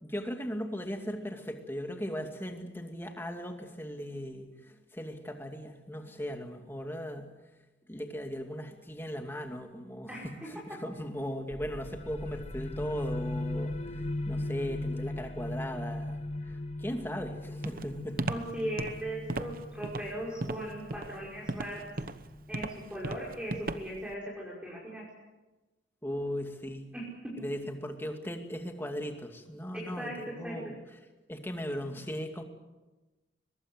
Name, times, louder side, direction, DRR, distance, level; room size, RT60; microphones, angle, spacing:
voice 1, 0.0-7.3 7.9-16.2 16.4-18.2 26.0-26.8 27.4-30.8 31.3-32.4, equal, 10° left, 4 dB, 2.4 m, -38 dB
voice 2, 10.1-10.5 18.3-21.9 22.5-25.1 26.9-27.3 29.7-30.6, right 1 dB, 5° right, -6 dB, 5.4 m, -38 dB
sound 1, 11.5-22.9, left 1 dB, 35° left, 1.1 m, -38 dB
Walk footsteps, 17.6-24.1, right 2 dB, 50° right, 1.0 m, -36 dB
23.0 x 21.0 x 8.1 m, 1.1 s
head